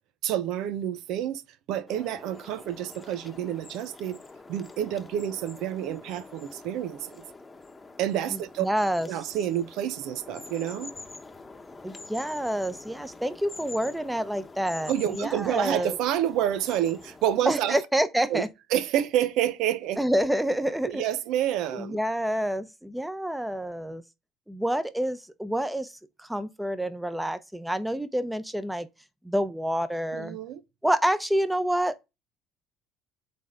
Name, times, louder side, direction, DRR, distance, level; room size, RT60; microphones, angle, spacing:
voice 1, 0.2-1.4 1.7-4.2 4.5-7.2 8.0-8.7 9.1-10.9 14.9-17.8 18.3-18.5 18.7-20.0 20.8-22.0 30.1-30.6, right 11 dB, 70° right, 0.7 m, -28 dB
sound 1, 1.9-17.6, left 3 dB, 20° left, 1.0 m, -46 dB
voice 2, 8.6-9.1 11.8-16.0 17.5-18.5 20.0-21.0 21.7-24.0 24.5-25.9 26.2-28.9 29.2-30.4 30.8-31.9, right 1 dB, 5° right, 0.8 m, -28 dB
8.4 x 3.4 x 3.8 m
supercardioid pair, 80°, 0 cm